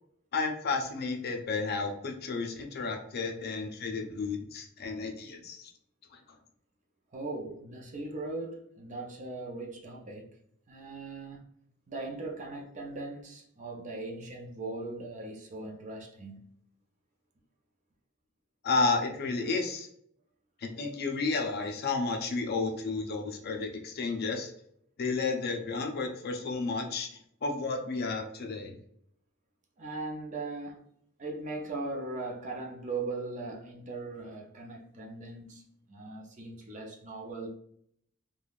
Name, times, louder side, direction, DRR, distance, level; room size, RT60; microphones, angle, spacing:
voice 1, 0.3-5.7 6.1-6.2 18.6-19.9 20.6-24.5 25.0-27.1 27.4-28.8, left 3 dB, 50° left, 0.5 m, -32 dB
voice 2, 7.1-10.4 10.7-11.5 11.9-16.5 29.8-30.9 31.2-37.5, right 3 dB, 35° right, 0.5 m, -39 dB
3.4 x 2.2 x 2.3 m
head